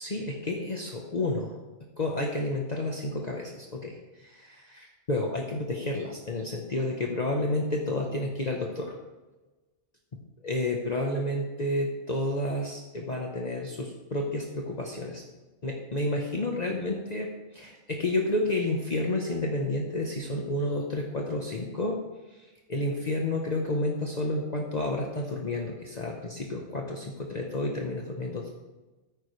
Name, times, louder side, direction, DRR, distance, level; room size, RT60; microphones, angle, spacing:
voice 1, 0.0-1.5 2.0-8.9 10.4-15.2 15.6-22.0 22.7-28.5, left 1 dB, 35° left, 0 dB, 1.2 m, -30 dB
14.0 x 9.7 x 3.3 m, 1.2 s
omnidirectional pair, 1.2 m